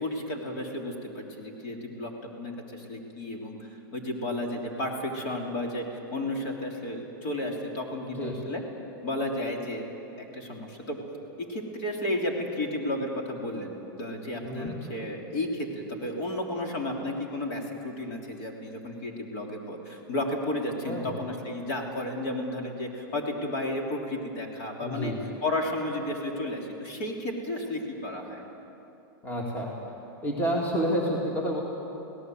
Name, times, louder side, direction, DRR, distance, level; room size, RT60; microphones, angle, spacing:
voice 1, 0.0-2.1 2.4-8.6 9.0-9.9 10.2-11.0 11.4-25.1 25.4-28.4, left 1 dB, 45° left, 1 dB, 3.4 m, -33 dB
voice 2, 8.0-8.3 14.4-14.9 20.9-21.1 24.8-25.2 29.2-29.7 30.2-31.6, equal, 15° left, -1 dB, 2.5 m, -29 dB
24.5 x 17.5 x 7.9 m, 2.9 s
supercardioid pair, 155°, 12 cm